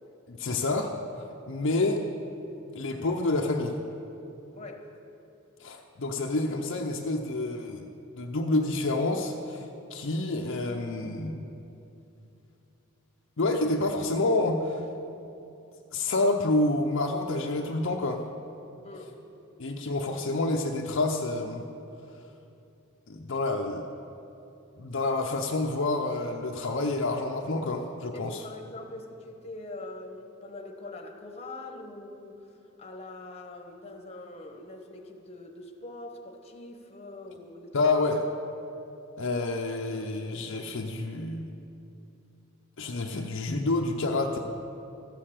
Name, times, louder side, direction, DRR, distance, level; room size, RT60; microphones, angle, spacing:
voice 1, 0.3-2.0 2.7-3.8 5.6-7.9 8.2-11.4 13.4-14.9 15.9-18.2 19.6-21.7 23.1-23.9 24.8-28.5 37.7-38.3 39.2-41.5 42.8-44.4, left 2 dB, 60° left, 2 dB, 0.6 m, -28 dB
voice 2, 4.5-4.9 18.8-19.1 28.1-32.4 32.8-37.8, left 2 dB, 30° left, 3 dB, 1.1 m, -43 dB
14.0 x 6.6 x 7.5 m, 2.8 s
head